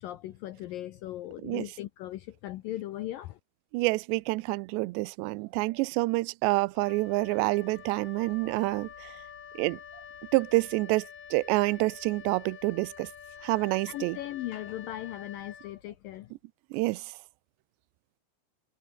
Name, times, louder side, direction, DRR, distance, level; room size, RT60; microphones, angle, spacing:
voice 1, 0.0-3.4 13.9-16.3, left 14 dB, 80° left, 2.1 m, -38 dB
voice 2, 3.7-9.1 9.6-9.8 10.3-13.1 13.4-14.2 16.7-17.1, right 22 dB, 85° right, 2.8 m, -28 dB
Wind instrument woodwind instrument, 6.7-16.2, left 7 dB, 55° left, 4.2 m, -47 dB
omnidirectional pair, 5.0 m